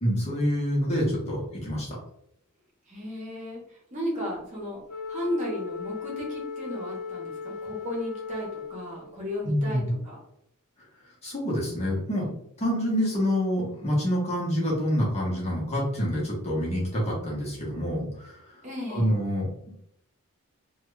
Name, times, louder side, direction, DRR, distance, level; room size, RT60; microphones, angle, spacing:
voice 1, 0.0-2.0 9.4-9.8 11.2-12.3 12.6-18.4 18.9-19.7, equal, 30° left, -4 dB, 0.9 m, -27 dB
voice 2, 2.9-4.8 5.1-10.2 18.6-19.1, left 1 dB, 30° right, -3 dB, 0.9 m, -34 dB
Wind instrument woodwind instrument, 4.9-9.2, left 5 dB, 70° left, 0.6 m, -37 dB
2.8 x 2.3 x 3.2 m, 0.74 s
head